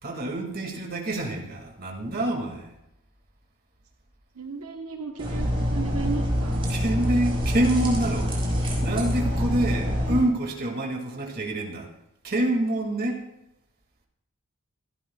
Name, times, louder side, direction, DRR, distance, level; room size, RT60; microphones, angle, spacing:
voice 1, 0.0-2.7 6.7-8.3 8.8-11.9 12.2-13.2, right 1 dB, 45° right, 1 dB, 2.2 m, -27 dB
voice 2, 4.3-6.7, right 4 dB, 80° right, 2 dB, 1.2 m, -34 dB
sound 1, 5.2-10.2, equal, 25° right, 4.9 m, -26 dB
25.0 x 12.0 x 2.3 m, 0.82 s
head